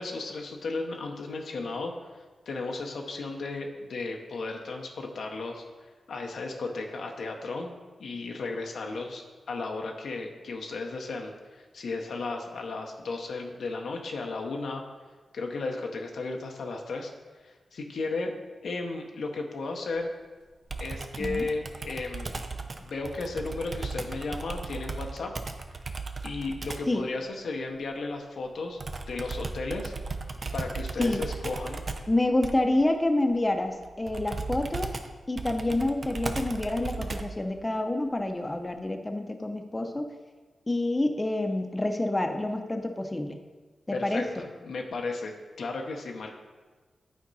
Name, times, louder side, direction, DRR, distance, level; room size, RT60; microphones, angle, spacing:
voice 1, 0.0-1.9 2.5-5.6 6.1-7.7 8.0-14.8 15.3-17.1 17.4-18.3 18.6-20.1 20.8-22.3 22.8-25.3 26.2-28.8 29.0-29.9 30.5-31.8 43.9-46.3, left 3 dB, 80° left, 2 dB, 0.8 m, -34 dB
Computer keyboard, 20.7-27.0 28.8-37.5, right 3 dB, 50° right, 0.6 m, -36 dB
voice 2, 32.1-34.9 35.3-40.1 40.7-43.4 43.9-44.5, left 1 dB, 25° left, 4 dB, 0.8 m, -28 dB
9.4 x 4.4 x 4.1 m, 1.3 s
cardioid pair, 50°, 0 cm